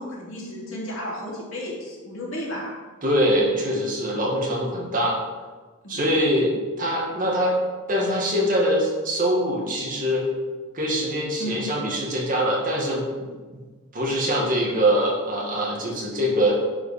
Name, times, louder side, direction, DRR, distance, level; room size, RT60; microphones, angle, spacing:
voice 1, 0.0-2.7 5.8-6.0 11.4-11.6, left 1 dB, 65° left, -5 dB, 2.9 m, -33 dB
voice 2, 3.0-5.2 5.9-7.6 7.9-10.3 10.7-13.3 13.9-16.5, equal, 40° right, -2 dB, 1.9 m, -23 dB
10.5 x 4.9 x 5.1 m, 1.4 s
head